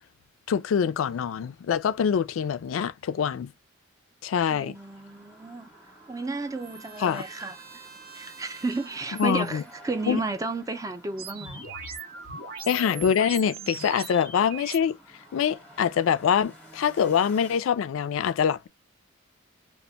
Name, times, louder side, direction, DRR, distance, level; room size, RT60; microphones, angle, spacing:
voice 1, 0.5-3.5 4.2-4.7 7.0-7.2 9.2-9.6 10.1-10.2 12.7-15.0 15.3-18.7, left 7 dB, 75° left, 0.3 m, -24 dB
voice 2, 4.5-5.7 6.1-7.6 8.1-11.6, right 3 dB, 15° right, 0.4 m, -32 dB
sound 1, 4.7-17.6, right 1 dB, 5° left, 0.8 m, -52 dB
Trumpet, 5.1-9.5, right 6 dB, 50° right, 0.7 m, -49 dB
sound 2, 11.2-14.8, right 3 dB, 75° right, 1.0 m, -39 dB
2.1 x 2.1 x 3.8 m
head